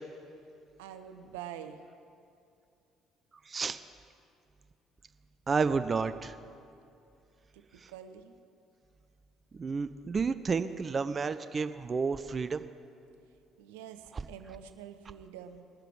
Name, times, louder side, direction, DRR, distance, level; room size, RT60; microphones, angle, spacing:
voice 1, 0.8-1.8 7.5-8.3 13.6-15.7, right 9 dB, 75° right, 8 dB, 0.6 m, -46 dB
voice 2, 3.5-3.8 5.5-6.4 7.8-7.9 9.5-12.6 14.1-14.2, right 5 dB, 35° right, 11 dB, 0.5 m, -31 dB
20.0 x 6.8 x 4.7 m, 2.5 s
hypercardioid pair, 50°, 0 cm